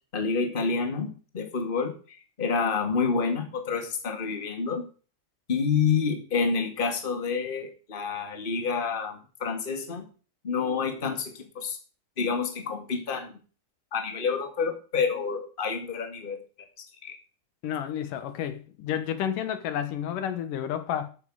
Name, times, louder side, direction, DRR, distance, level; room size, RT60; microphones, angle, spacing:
voice 1, 0.1-4.9 5.5-10.0 10.4-11.8 12.2-13.4 13.9-16.4 16.8-17.2, left 5 dB, 20° left, 1.9 m, -28 dB
voice 2, 17.6-21.1, left 9 dB, 85° left, 2.9 m, -31 dB
13.5 x 8.9 x 5.0 m
omnidirectional pair, 3.7 m